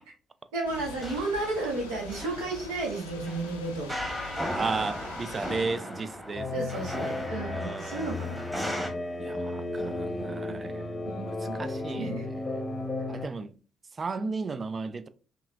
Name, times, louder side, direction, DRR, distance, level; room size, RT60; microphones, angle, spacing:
voice 1, 0.5-4.0 6.5-8.5 10.5-10.6 11.0-11.6 11.8-12.2, right 2 dB, 70° right, 1.2 m, -33 dB
Thunder / Rain, 0.6-5.6, left 4 dB, 80° left, 0.4 m, -44 dB
sound 1, 0.9-8.9, equal, 10° right, 1.3 m, -37 dB
voice 2, 4.5-6.5 7.5-8.1 9.2-10.8 11.2-12.2 13.1-13.5 14.0-15.1, right 4 dB, 35° right, 0.4 m, -34 dB
sound 2, 6.4-13.3, left 2 dB, 25° left, 0.8 m, -34 dB
5.5 x 2.4 x 2.4 m
figure-of-eight pair, 45°, 0 cm